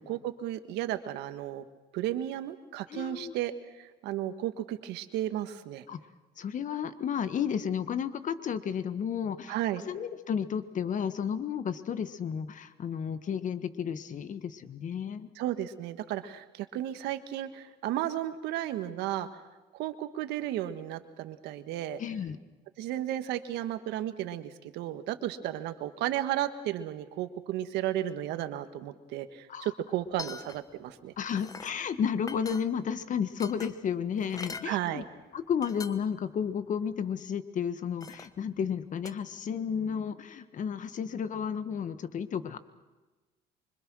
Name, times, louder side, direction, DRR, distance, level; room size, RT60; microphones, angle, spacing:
voice 1, 0.0-1.6 1.9-5.8 9.5-9.8 15.3-19.4 19.7-22.0 22.8-31.1 34.6-35.0, right 12 dB, 90° right, 10 dB, 1.6 m, -34 dB
voice 2, 2.9-3.3 5.9-6.0 6.4-9.5 9.9-15.3 22.0-22.4 29.5-29.7 31.2-35.0 35.3-42.6, left 7 dB, 50° left, 12 dB, 1.5 m, -32 dB
sound 1, 30.0-30.8 31.1-31.8 32.2-33.0 33.4-34.7 35.3-35.4 35.6-36.2 36.6-36.7 38.0-38.4 39.1-39.2, left 4 dB, 20° left, 1.3 m, -43 dB
26.0 x 24.5 x 6.3 m, 1.2 s
cardioid pair, 110°, 17 cm